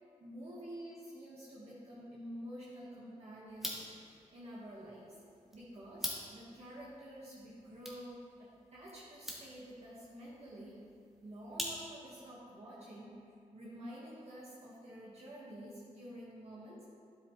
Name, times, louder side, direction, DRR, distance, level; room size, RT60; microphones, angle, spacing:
voice 1, 0.2-5.1 5.5-10.8 11.2-16.8, equal, 55° right, -7 dB, 1.7 m, -49 dB
sound 1, 3.5-12.2, equal, ahead, 1.8 m, -47 dB
9.6 x 8.1 x 3.2 m, 2.3 s
cardioid pair, 70°, 13 cm